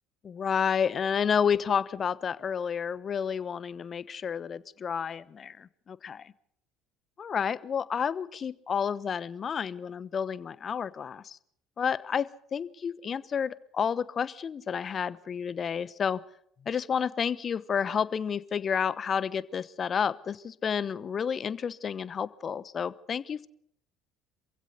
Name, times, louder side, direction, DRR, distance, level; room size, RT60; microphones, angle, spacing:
voice 1, 0.2-6.3 7.2-11.4 11.8-16.2 16.6-23.5, left 7 dB, 40° left, 19 dB, 1.0 m, -30 dB
26.5 x 16.0 x 6.7 m, 0.67 s
hypercardioid pair, 60°, 0 cm